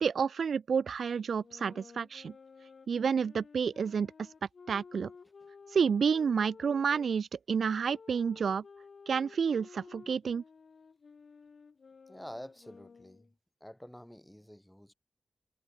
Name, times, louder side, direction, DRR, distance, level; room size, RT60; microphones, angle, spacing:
voice 1, 0.0-2.3 2.9-4.1 4.7-5.1 5.7-8.6 9.1-10.4, right 6 dB, 70° right, 0.6 m, -30 dB
sound 1, 1.3-7.2 7.9-13.3, left 5 dB, 50° left, 3.1 m, -54 dB
voice 2, 12.1-13.3 13.6-14.9, equal, 5° left, 2.1 m, -48 dB
wide cardioid pair, 135°, 0 cm